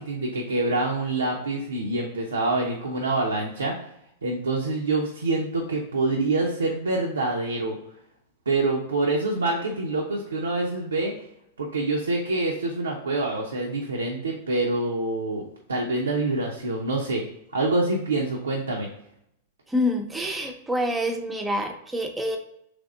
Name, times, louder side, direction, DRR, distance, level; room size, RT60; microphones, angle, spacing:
voice 1, 0.0-3.8 4.2-7.8 8.5-11.1 11.6-15.4 15.7-17.2 17.5-18.9, right 2 dB, 85° right, -1 dB, 0.6 m, -26 dB
voice 2, 19.7-22.4, left 1 dB, 10° right, 3 dB, 0.7 m, -27 dB
3.5 x 3.3 x 3.7 m, 0.73 s
hypercardioid pair, 100°, 0 cm